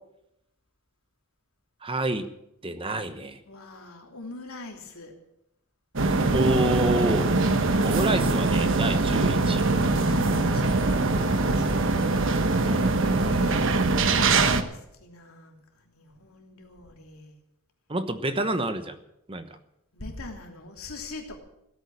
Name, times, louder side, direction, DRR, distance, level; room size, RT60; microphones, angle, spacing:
voice 1, 1.8-2.3 2.6-3.4 6.3-7.3 7.8-9.7 12.6-13.5 17.9-19.0 19.3-19.4, right 1 dB, 25° right, 10 dB, 1.0 m, -28 dB
voice 2, 3.5-5.1 10.0-12.5 13.4-17.3 19.9-21.4, left 2 dB, 75° left, 2 dB, 3.1 m, -43 dB
sound 1, 5.9-14.6, right 3 dB, 60° right, 1.2 m, -23 dB
16.5 x 9.0 x 8.6 m, 0.82 s
head